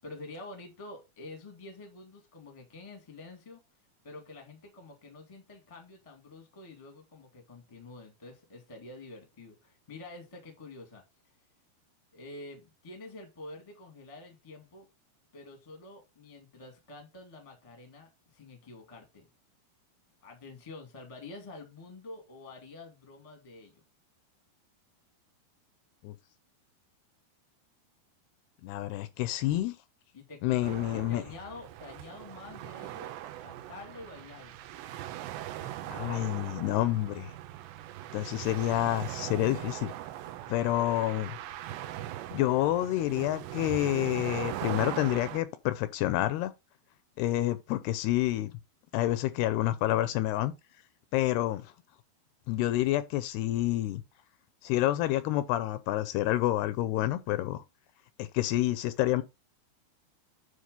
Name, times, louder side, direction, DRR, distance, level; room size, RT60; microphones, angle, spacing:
voice 1, 0.0-3.6 4.0-11.0 12.1-14.8 15.3-19.3 20.2-23.7 30.1-33.1 33.4-34.6 35.5-36.4, left 2 dB, 20° left, 1.0 m, -48 dB
voice 2, 28.6-29.8 30.4-31.2 35.9-37.3 38.1-39.9 40.5-41.4 42.3-46.5 47.2-48.5 48.9-50.5 51.1-51.7 52.5-54.0 54.6-57.6 58.2-59.2, left 15 dB, 80° left, 2.6 m, -28 dB
sound 1, 30.6-45.4, right 13 dB, 90° right, 3.0 m, -40 dB
9.6 x 3.4 x 5.3 m
omnidirectional pair, 4.8 m